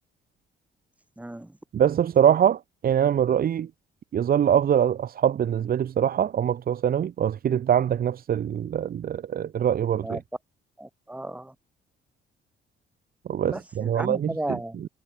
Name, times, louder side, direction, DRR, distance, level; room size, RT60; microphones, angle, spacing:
voice 1, 1.2-1.6 10.0-10.2 10.8-11.5 13.4-14.9, right 1 dB, 5° right, 1.7 m, -34 dB
voice 2, 1.7-3.7 4.1-10.2 13.3-14.3, right 9 dB, 50° right, 0.7 m, -23 dB
cardioid pair, 90°, 20 cm